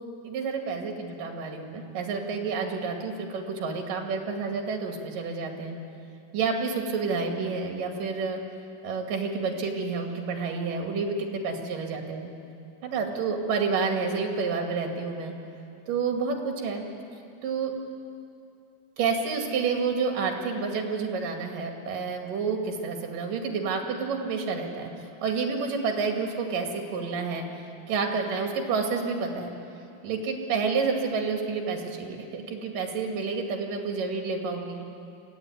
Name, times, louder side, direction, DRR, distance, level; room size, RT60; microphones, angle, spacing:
voice 1, 0.2-5.8 6.3-8.4 8.8-12.3 12.8-15.3 15.9-16.8 17.4-17.7 19.0-24.9 25.2-27.5 27.9-29.5 30.0-34.9, right 5 dB, 65° right, 3 dB, 3.8 m, -29 dB
25.0 x 15.0 x 9.6 m, 2.6 s
omnidirectional pair, 4.3 m